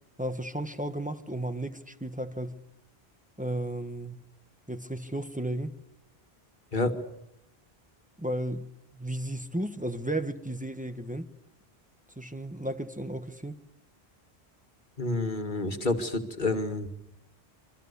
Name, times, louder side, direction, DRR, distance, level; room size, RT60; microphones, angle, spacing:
voice 1, 0.2-2.6 3.4-4.2 4.7-5.7 8.2-8.7 9.0-11.3 12.2-13.6, right 1 dB, 10° right, 1.3 m, -34 dB
voice 2, 15.0-16.9, left 2 dB, 50° left, 2.3 m, -29 dB
27.0 x 24.5 x 6.9 m
omnidirectional pair, 1.1 m